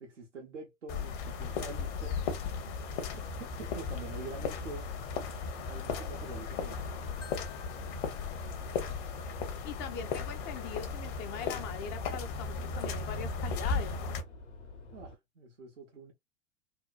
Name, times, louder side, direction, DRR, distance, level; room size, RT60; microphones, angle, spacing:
voice 1, 0.0-2.2 3.1-4.9 5.7-6.8 14.9-16.1, right 4 dB, 80° right, 0.7 m, -46 dB
sound 1, 0.9-14.2, left 5 dB, 45° left, 0.8 m, -36 dB
sound 2, 1.4-15.2, left 3 dB, 65° left, 1.0 m, -49 dB
Marimba xylophone, 7.2-9.3, left 10 dB, 85° left, 0.7 m, -56 dB
voice 2, 9.6-14.1, left 7 dB, 30° left, 0.4 m, -41 dB
2.9 x 2.2 x 2.2 m
figure-of-eight pair, 90°, 36 cm